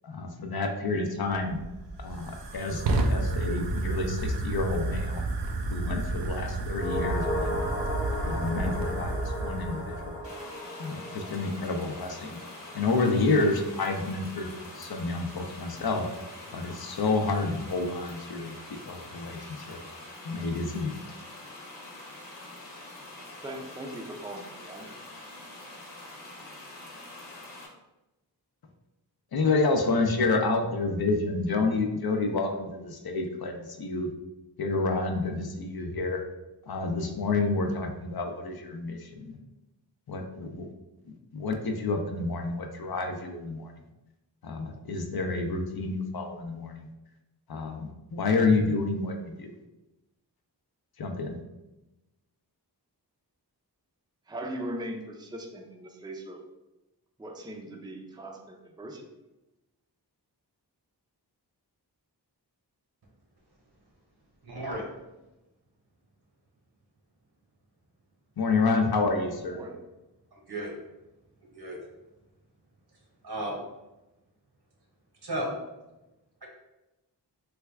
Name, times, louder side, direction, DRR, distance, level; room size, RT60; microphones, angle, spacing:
voice 1, 0.0-1.6 2.0-5.2 5.7-7.7 8.2-10.1 10.8-12.4 12.7-16.1 16.5-18.6 18.9-19.8 20.2-20.9 29.3-34.1 34.6-36.2 36.7-39.4 40.1-40.7 41.1-43.7 44.4-46.9 47.5-49.5 51.0-51.4 68.4-69.6, left 3 dB, 60° left, 4 dB, 0.5 m, -29 dB
Fire, 1.3-10.3, right 2 dB, 80° right, 0.5 m, -31 dB
sound 1, 6.7-15.2 15.5-15.6, left 1 dB, 35° left, 0.9 m, -37 dB
sound 2, 10.2-27.7, left 2 dB, 80° left, 0.9 m, -45 dB
voice 2, 23.4-24.9 54.3-56.4 57.2-59.1 69.4-69.8, right 1 dB, 10° right, 2 dB, 0.4 m, -39 dB
voice 3, 64.4-64.9 70.3-70.7 71.5-71.8 73.2-73.6 75.2-75.5 76.4-76.5, right 1 dB, 65° right, -1 dB, 1.0 m, -34 dB
3.3 x 2.3 x 3.3 m, 1.0 s
wide cardioid pair, 55°, 41 cm